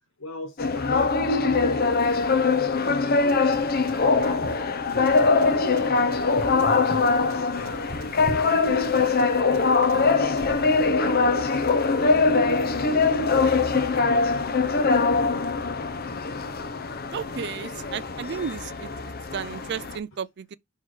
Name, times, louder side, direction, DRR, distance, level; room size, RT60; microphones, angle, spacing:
voice 1, 0.2-2.0 2.4-4.5 4.8-9.7 10.0-11.8 12.4-15.0, left 2 dB, 80° left, 1.4 m, -40 dB
sound 1, 0.6-20.0, left 4 dB, 50° left, 0.8 m, -22 dB
sound 2, 3.3-4.4 5.1-6.2 6.6-8.1 8.8-10.0 10.4-10.8, right 3 dB, 80° right, 1.1 m, -45 dB
sound 3, 4.1-9.5 10.4-10.7, equal, 30° left, 1.8 m, -39 dB
voice 2, 17.1-18.9 19.3-20.6, right 7 dB, 55° right, 0.4 m, -33 dB
5.8 x 4.6 x 4.9 m
head